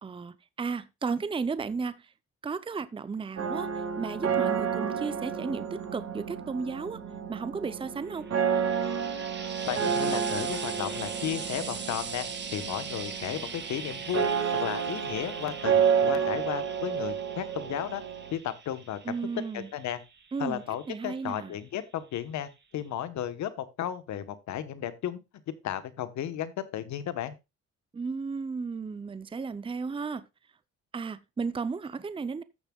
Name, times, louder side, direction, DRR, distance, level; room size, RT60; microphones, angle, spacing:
voice 1, 0.0-2.1 2.4-7.0 7.3-8.3 19.0-19.7 20.3-21.6 27.9-30.2 30.9-32.4, right 5 dB, 20° right, 0.6 m, -34 dB
sound 1, 3.4-18.3, right 7 dB, 55° right, 2.2 m, -30 dB
Frying (food), 8.1-21.6 22.5-22.6, right 5 dB, 40° right, 1.7 m, -41 dB
voice 2, 9.7-18.0 18.3-19.0 19.5-20.0 20.4-25.2 25.6-27.3, left 10 dB, 70° left, 1.2 m, -34 dB
15.0 x 6.8 x 2.3 m
cardioid pair, 80°, 29 cm